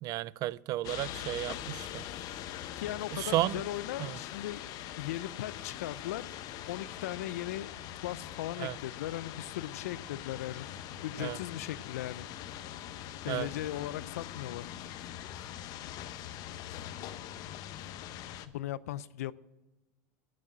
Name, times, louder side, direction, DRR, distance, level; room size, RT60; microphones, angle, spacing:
voice 1, 0.0-2.0 3.1-3.6 4.0-4.2 8.6-8.8 11.2-11.4 13.3-13.5, right 16 dB, 50° right, 0.3 m, -33 dB
sound 1, 0.8-18.5, left 11 dB, 55° left, 0.8 m, -42 dB
voice 2, 2.8-4.6 5.0-6.2 6.7-7.7 8.0-10.7 11.0-12.3 13.2-14.7 18.5-19.3, left 13 dB, 85° left, 0.5 m, -38 dB
12.0 x 6.4 x 9.2 m
supercardioid pair, 105°, 8 cm